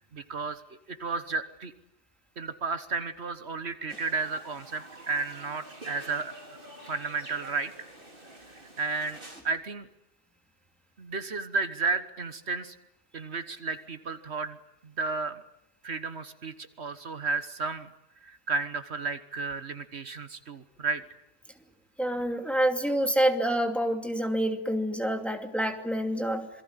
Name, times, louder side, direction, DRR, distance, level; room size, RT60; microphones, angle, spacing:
voice 1, 0.1-0.6 0.9-1.7 2.4-6.6 6.9-7.7 8.8-9.2 9.4-9.9 11.0-12.7 13.1-14.6 14.8-15.4 15.8-17.9 18.2-21.0, right 4 dB, 65° right, 11 dB, 1.6 m, -33 dB
sound 1, 3.9-9.4, right 1 dB, 50° right, 4.2 m, -48 dB
voice 2, 22.0-26.5, right 1 dB, ahead, 5 dB, 2.6 m, -27 dB
27.0 x 22.5 x 9.7 m, 0.83 s
omnidirectional pair, 1.2 m